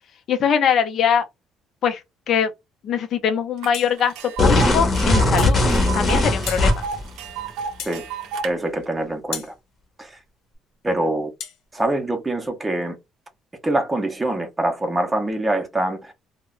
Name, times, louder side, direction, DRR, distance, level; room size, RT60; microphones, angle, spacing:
voice 1, 0.3-1.2 1.8-2.0 2.3-2.5 2.8-5.6 5.9-6.8, left 8 dB, 50° left, 0.6 m, -22 dB
Tick, 3.6-3.7 4.0-8.5, right 5 dB, 85° right, 0.5 m, -31 dB
sound 1, 3.7-4.0 5.4-5.6 6.5-6.7 7.8-8.0 9.3-9.5 11.4-11.6, left 8 dB, 85° left, 0.9 m, -33 dB
sound 2, 4.4-7.0, left 2 dB, 25° left, 0.9 m, -19 dB
voice 2, 8.4-9.5 10.0-10.2 10.8-11.3 11.7-13.0 13.6-16.1, right 1 dB, 10° right, 0.7 m, -24 dB
2.2 x 2.1 x 3.7 m
cardioid pair, 150°, 0 cm